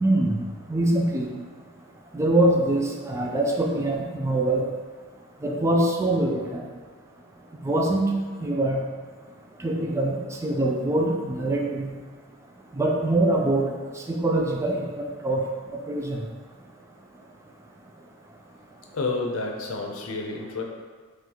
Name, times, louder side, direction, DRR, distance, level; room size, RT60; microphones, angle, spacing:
voice 1, 0.0-0.4 0.7-1.3 2.1-4.7 5.4-6.6 7.6-8.1 8.4-8.8 9.6-11.9 12.7-13.8 14.1-15.5 15.7-16.2, right 1 dB, 15° right, 0 dB, 0.3 m, -24 dB
voice 2, 18.9-20.6, left 3 dB, 80° left, 1 dB, 0.6 m, -29 dB
3.2 x 3.0 x 3.7 m, 1.5 s
head